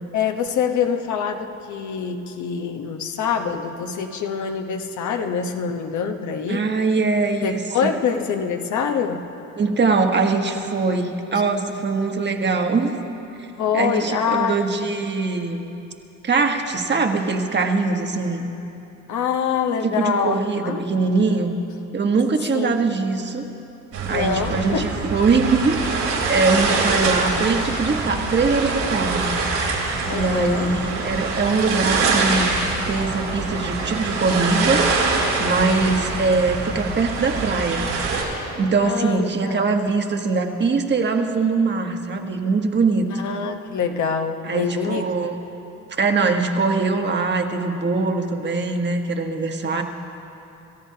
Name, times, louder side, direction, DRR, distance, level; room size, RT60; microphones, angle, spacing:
voice 1, 0.1-6.6 7.4-9.2 13.6-14.6 19.1-20.9 22.5-22.8 24.1-25.0 29.2-29.3 30.1-30.7 35.6-36.0 38.8-39.7 43.2-45.1 49.7-49.8, left 6 dB, 70° left, 5 dB, 1.1 m, -25 dB
voice 2, 6.5-7.6 9.6-13.0 13.4-13.5 13.7-15.6 16.2-18.5 19.8-21.5 21.9-23.4 24.1-25.8 26.3-29.3 30.1-32.5 32.9-34.9 35.4-38.2 38.5-43.3 44.4-45.3 46.0-49.8, right 4 dB, 35° right, 4 dB, 1.3 m, -22 dB
sound 1, 23.9-38.2, right 3 dB, 90° right, 3.7 m, -24 dB
28.5 x 14.0 x 2.8 m, 2.9 s
cardioid pair, 90°, 30 cm